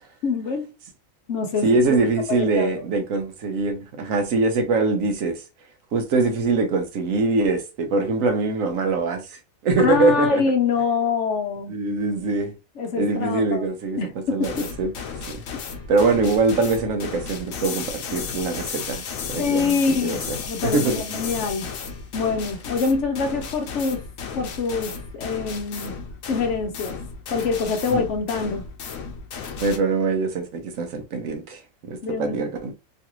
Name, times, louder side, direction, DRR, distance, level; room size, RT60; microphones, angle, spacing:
voice 1, 0.2-0.7 1.3-2.7 9.8-11.8 12.8-13.7 14.0-14.7 19.4-21.7 22.1-24.0 24.3-26.0 26.3-27.0 27.3-28.6 32.0-32.5, left 5 dB, 65° left, 0.9 m, -25 dB
voice 2, 1.6-5.4 5.9-10.4 11.7-12.5 12.9-14.9 15.3-15.4 15.9-20.2 20.6-20.9 27.9-28.0 29.6-31.6 31.9-32.7, right 3 dB, 75° right, 1.1 m, -23 dB
sound 1, 14.4-29.8, left 6 dB, 85° left, 1.1 m, -34 dB
3.1 x 2.5 x 2.9 m
omnidirectional pair, 1.4 m